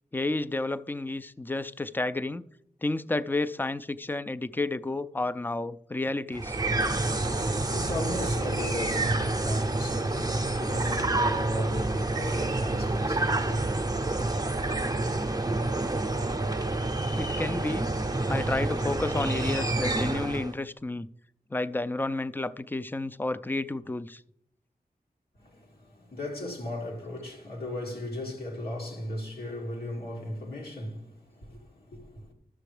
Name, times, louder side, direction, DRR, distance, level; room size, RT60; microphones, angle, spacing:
voice 1, 0.1-2.4 2.8-6.6 17.2-17.9 18.3-21.1 21.5-24.2, left 2 dB, 15° left, 0.3 m, -31 dB
sound 1, 6.3-20.6, right 2 dB, 25° right, 0.6 m, -28 dB
voice 2, 6.9-13.6 25.4-32.3, left 1 dB, 85° left, 2.1 m, -36 dB
12.5 x 6.7 x 3.3 m
wide cardioid pair, 60°, 16 cm